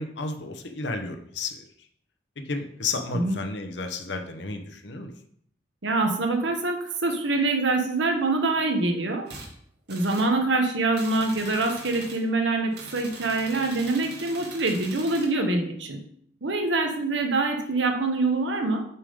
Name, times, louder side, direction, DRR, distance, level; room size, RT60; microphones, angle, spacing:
voice 1, 0.0-1.6 2.5-5.1, left 3 dB, 70° left, 5 dB, 0.9 m, -32 dB
voice 2, 5.8-9.3 9.9-16.0 16.4-18.8, right 2 dB, 80° right, 4 dB, 1.1 m, -25 dB
sound 1, 9.3-9.5 9.9-10.3 10.9-12.2 12.7-15.3, right 3 dB, 65° right, 1.7 m, -41 dB
8.2 x 3.7 x 5.1 m, 0.66 s
head